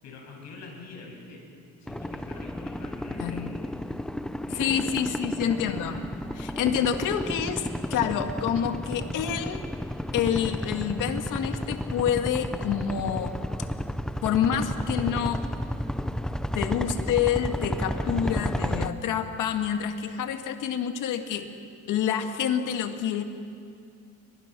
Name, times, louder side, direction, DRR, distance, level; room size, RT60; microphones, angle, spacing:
voice 1, 0.0-3.7 4.4-6.0, left 3 dB, 60° left, 0 dB, 7.4 m, -45 dB
sound 1, 1.9-18.9, equal, ahead, 0.5 m, -32 dB
voice 2, 3.2-3.6 4.5-6.0 6.4-9.7 10.1-13.4 14.2-15.4 16.5-21.5 21.9-23.2, left 8 dB, 80° left, 6 dB, 2.0 m, -27 dB
30.0 x 24.5 x 6.2 m, 2.3 s
cardioid pair, 170°, 31 cm